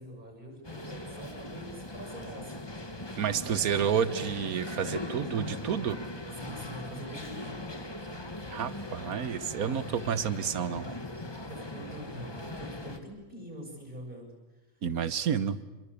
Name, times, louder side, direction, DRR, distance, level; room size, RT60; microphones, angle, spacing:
voice 1, 0.0-2.7 3.4-3.7 6.4-7.6 11.5-14.3, right 1 dB, 30° right, 2 dB, 7.3 m, -45 dB
sound 1, 0.6-13.0, left 1 dB, 15° left, 1.6 m, -40 dB
voice 2, 3.2-6.0 8.5-10.9 14.8-15.6, right 8 dB, 80° right, 14 dB, 1.5 m, -30 dB
28.0 x 23.0 x 8.5 m, 1.1 s
omnidirectional pair, 1.5 m